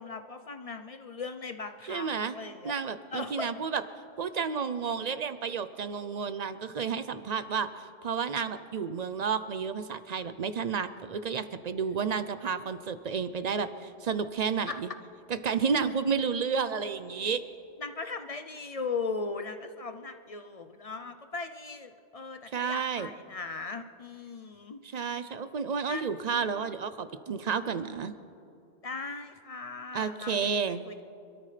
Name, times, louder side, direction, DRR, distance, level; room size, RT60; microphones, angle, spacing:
voice 1, 0.0-2.7 3.1-3.5 14.7-14.8 17.8-24.8 25.9-26.0 28.8-31.0, left 4 dB, 45° left, 8 dB, 0.5 m, -38 dB
voice 2, 1.9-2.4 2.6-3.8 4.2-14.9 15.4-17.4 22.5-23.1 24.8-28.1 29.9-30.8, right 6 dB, 50° right, 12 dB, 0.5 m, -31 dB
27.0 x 13.0 x 3.3 m, 2.6 s
omnidirectional pair, 1.2 m